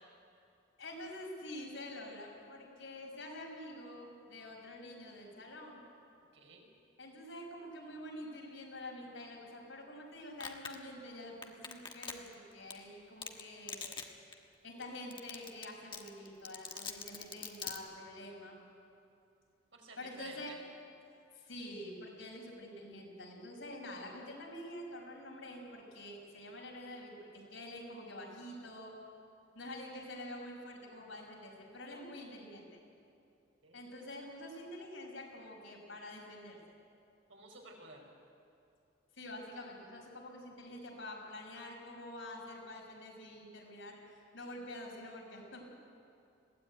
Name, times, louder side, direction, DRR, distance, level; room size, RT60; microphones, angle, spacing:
voice 1, 0.8-5.8 7.0-14.0 14.6-18.5 20.0-20.5 21.3-28.9 29.5-32.8 33.7-36.6 39.2-45.6, left 1 dB, 85° left, -1 dB, 5.6 m, -47 dB
voice 2, 6.3-6.7 19.7-20.6 33.6-33.8 37.3-38.1, right 3 dB, 80° right, 0 dB, 4.7 m, -53 dB
Domestic sounds home sounds, 10.4-10.8 11.4-12.3 12.7-12.8 13.2-13.4 13.7-14.0 14.3-14.4 14.8-14.9 15.1-15.6 15.9-17.8, left 6 dB, 25° left, 1.3 m, -41 dB
21.0 x 16.0 x 9.2 m, 2.7 s
head